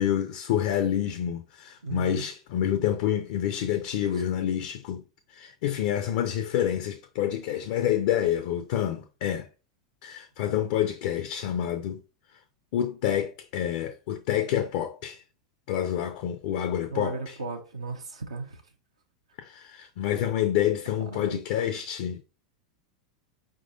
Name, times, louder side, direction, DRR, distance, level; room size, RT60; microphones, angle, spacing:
voice 1, 0.0-5.0 5.3-9.5 10.0-12.0 12.7-15.2 15.7-17.4 19.4-22.2, left 10 dB, 55° left, 0.5 m, -28 dB
voice 2, 1.8-2.2 16.9-18.6 21.1-21.4, right 3 dB, 80° right, 0.7 m, -35 dB
4.8 x 3.6 x 2.6 m
figure-of-eight pair, 90°, 3 cm